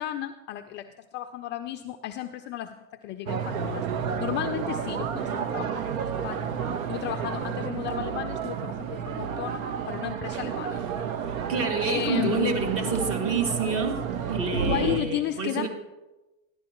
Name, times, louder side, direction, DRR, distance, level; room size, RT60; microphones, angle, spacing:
voice 1, 0.0-2.8 3.0-3.9 4.2-6.5 6.9-11.1 11.9-12.6 14.5-15.7, left 12 dB, 30° left, 8 dB, 0.4 m, -33 dB
sound 1, 3.3-15.0, right 7 dB, 75° right, 1.1 m, -31 dB
voice 2, 11.5-15.7, right 4 dB, 35° right, 4 dB, 2.1 m, -28 dB
15.5 x 11.5 x 3.0 m, 1.0 s
hypercardioid pair, 115°, 41 cm